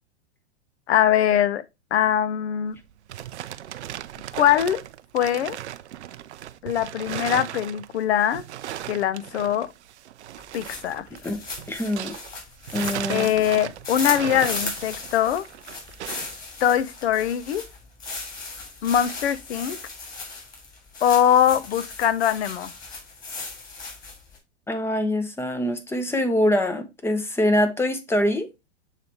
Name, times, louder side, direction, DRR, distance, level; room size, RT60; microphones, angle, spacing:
voice 1, 0.9-1.6 1.9-2.8 4.4-4.8 5.1-5.6 6.6-8.4 8.9-9.7 10.5-11.1 13.1-15.5 16.6-17.6 18.8-19.8 21.0-22.7, left 10 dB, 65° left, 0.7 m, -22 dB
sound 1, 2.7-12.3 12.6-16.4, right 12 dB, 70° right, 0.5 m, -36 dB
sound 2, 10.4-24.4, left 3 dB, 25° left, 2.8 m, -37 dB
voice 2, 11.7-12.2 12.7-13.3 24.7-28.5, left 1 dB, 5° left, 0.6 m, -24 dB
6.9 x 3.3 x 4.2 m
figure-of-eight pair, 105°, 35 cm